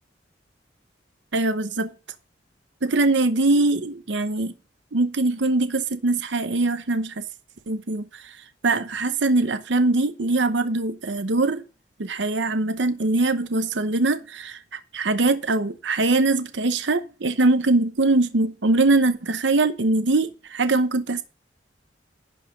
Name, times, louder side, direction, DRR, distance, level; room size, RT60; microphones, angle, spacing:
voice 1, 1.3-1.9 2.8-4.5 4.9-7.2 7.7-8.2 8.6-11.6 12.0-21.2, right 2 dB, 75° right, 0.9 m, -22 dB
11.0 x 4.9 x 5.1 m
head